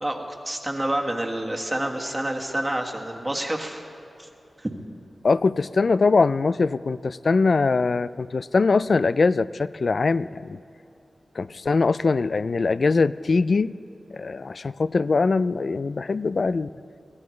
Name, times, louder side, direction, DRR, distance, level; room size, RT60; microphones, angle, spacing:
voice 1, 0.0-3.8 4.2-4.3 4.6-4.7, right 1 dB, 20° right, 0 dB, 1.5 m, -28 dB
voice 2, 5.2-10.6 11.4-13.7 14.1-16.7, left 4 dB, 60° left, 16 dB, 0.3 m, -22 dB
23.5 x 17.0 x 3.2 m, 2.7 s
wide cardioid pair, 70°, 0 cm